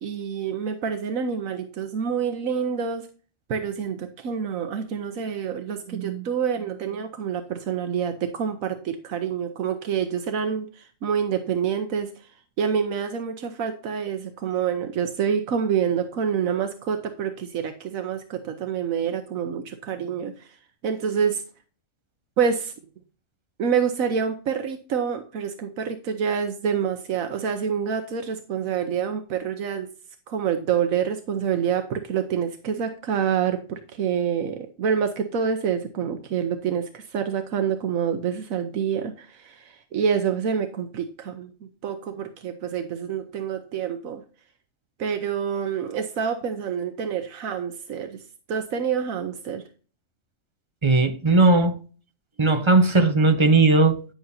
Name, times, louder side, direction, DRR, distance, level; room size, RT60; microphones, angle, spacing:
voice 1, 0.0-3.1 3.5-12.1 12.6-20.5 20.8-21.4 22.4-22.7 23.6-29.9 30.3-41.5 41.8-44.2 45.0-48.2 48.5-49.6, right 7 dB, 85° right, 1.3 m, -27 dB
voice 2, 50.8-51.8 52.4-54.1, right 3 dB, 25° right, 0.8 m, -18 dB
10.0 x 7.7 x 2.7 m
omnidirectional pair, 1.4 m